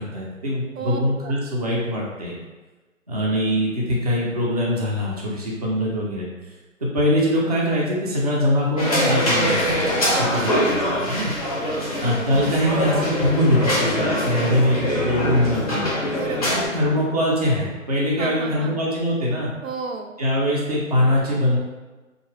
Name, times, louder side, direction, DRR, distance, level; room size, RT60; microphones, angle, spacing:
voice 1, 0.0-2.3 3.1-6.3 6.8-11.3 12.0-15.9 16.6-19.5 20.2-21.6, equal, 30° right, -5 dB, 0.4 m, -22 dB
voice 2, 0.7-1.3 10.1-10.9 11.6-12.1 16.1-16.6 18.2-18.8 19.6-20.2, right 5 dB, 80° right, 4 dB, 0.5 m, -33 dB
sound 1, 8.8-16.7, equal, 30° left, 0.5 m, -23 dB
Bowed string instrument, 12.7-17.4, left 7 dB, 75° left, 0.6 m, -34 dB
2.7 x 2.1 x 3.1 m, 1.2 s
figure-of-eight pair, 150°, 40 cm